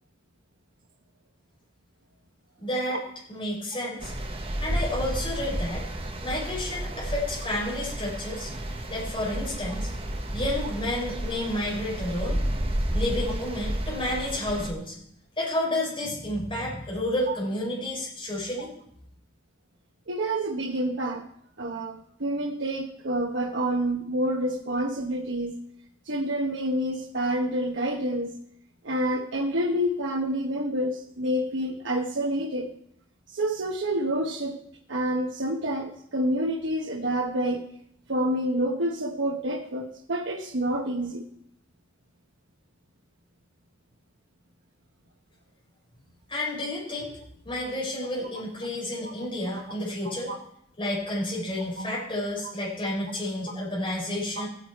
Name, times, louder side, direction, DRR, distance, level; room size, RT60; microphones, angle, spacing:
voice 1, 2.6-3.0 3.3-4.1 4.6-5.8 6.2-9.9 10.3-12.4 12.9-14.9 15.4-18.7 46.3-47.1 47.4-50.3 50.8-54.5, left 1 dB, 25° left, -4 dB, 5.8 m, -30 dB
sound 1, 4.0-14.7, right 1 dB, 30° right, 1.2 m, -31 dB
voice 2, 20.1-21.2 21.6-25.6 26.0-28.4 28.8-32.7 33.3-34.6 34.9-37.7 38.1-41.3 49.0-49.1 50.0-50.4 54.4-54.5, right 1 dB, 65° right, 2 dB, 1.0 m, -28 dB
15.5 x 9.1 x 4.6 m, 0.72 s
head